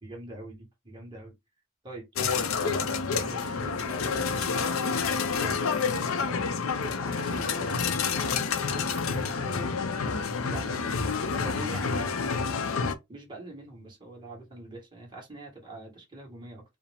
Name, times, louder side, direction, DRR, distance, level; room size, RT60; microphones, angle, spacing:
voice 1, 0.0-1.4 1.8-6.5 7.0-12.8 13.1-16.6, right 2 dB, 20° right, 1.6 m, -44 dB
sound 1, 2.2-12.9, left 5 dB, 75° left, 0.6 m, -28 dB
4.8 x 2.0 x 3.4 m
head